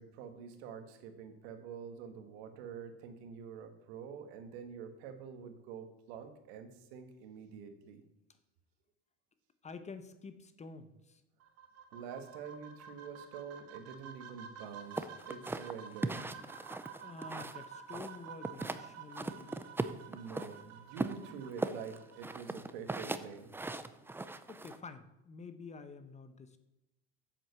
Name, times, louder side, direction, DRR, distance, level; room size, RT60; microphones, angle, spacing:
voice 1, 0.0-8.0 11.9-16.2 20.1-23.5, right 7 dB, 85° right, 7 dB, 1.6 m, -47 dB
voice 2, 9.6-11.2 17.0-19.6 24.5-26.6, left 4 dB, 20° left, 10 dB, 0.9 m, -49 dB
sound 1, 11.4-22.4, right 7 dB, 50° right, 1.4 m, -51 dB
sound 2, 15.0-17.6 17.9-18.8 19.1-20.5 21.0-24.8, right 2 dB, 5° right, 0.5 m, -38 dB
7.6 x 7.6 x 6.9 m, 0.91 s
supercardioid pair, 115°, 31 cm